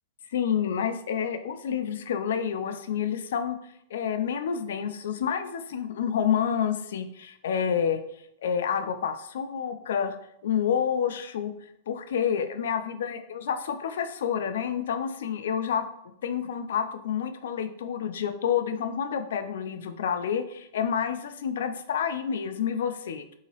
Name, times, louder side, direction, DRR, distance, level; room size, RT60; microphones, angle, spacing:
voice 1, 0.3-3.6 3.9-8.0 8.4-10.2 10.4-11.5 11.9-15.9 16.2-23.3, left 8 dB, 75° left, 9 dB, 0.3 m, -29 dB
3.9 x 2.7 x 2.9 m, 0.75 s
supercardioid pair, 180°, 0 cm